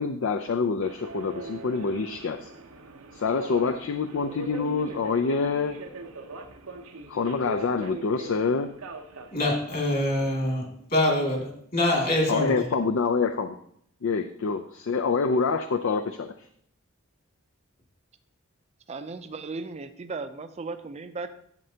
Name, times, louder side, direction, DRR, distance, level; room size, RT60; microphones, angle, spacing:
voice 1, 0.0-2.5 3.1-5.8 7.1-8.7 12.3-13.6 14.0-16.3, left 4 dB, 65° left, 8 dB, 0.4 m, -26 dB
Subway metro underground, 0.8-10.5, right 3 dB, 85° right, 0.8 m, -42 dB
voice 2, 9.3-12.7, left 1 dB, 45° left, -1 dB, 2.3 m, -25 dB
voice 3, 18.9-21.3, right 3 dB, 30° right, 8 dB, 0.4 m, -36 dB
11.0 x 7.7 x 2.8 m, 0.67 s
head